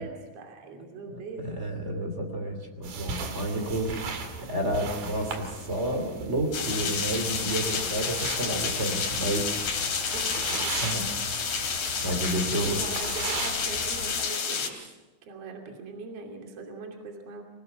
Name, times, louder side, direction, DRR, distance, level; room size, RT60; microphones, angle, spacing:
voice 1, 0.0-1.6 7.6-8.0 10.1-10.8 12.5-14.8 15.2-17.4, right 3 dB, 40° right, 2 dB, 3.2 m, -41 dB
voice 2, 1.4-4.1 4.4-9.5 10.8-11.0 12.0-12.8, right 1 dB, 20° right, 5 dB, 2.4 m, -30 dB
sound 1, 2.8-14.2, right 4 dB, 55° right, 3.1 m, -38 dB
sound 2, 6.5-14.7, left 6 dB, 50° left, 4.2 m, -30 dB
24.5 x 19.5 x 6.0 m, 1.2 s
omnidirectional pair, 5.2 m